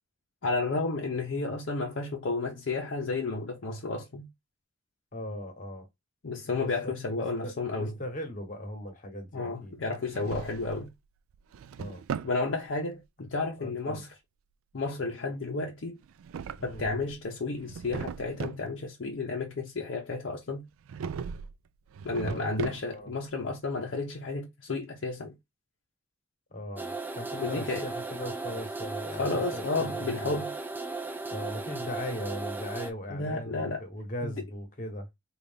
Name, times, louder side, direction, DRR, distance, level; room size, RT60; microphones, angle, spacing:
voice 1, 0.4-4.3 6.2-7.9 9.3-10.9 12.2-14.1 14.7-16.0 16.6-20.6 22.0-25.3 27.4-27.9 29.2-30.5 33.1-33.8 34.2-34.3, left 3 dB, 60° left, 0.6 m, -32 dB
voice 2, 5.1-5.9 6.6-6.9 7.4-9.7 11.8-12.0 13.6-14.0 16.6-16.8 22.2-23.1 26.5-30.4 31.3-35.1, equal, 40° left, 1.0 m, -39 dB
Drawer open or close, 9.9-10.9 11.3-12.4 16.0-17.2 17.5-18.7 20.8-21.5 21.9-23.1, right 6 dB, 85° right, 0.3 m, -38 dB
sound 1, 26.8-32.9, right 3 dB, 10° right, 0.4 m, -36 dB
3.8 x 2.4 x 3.5 m
head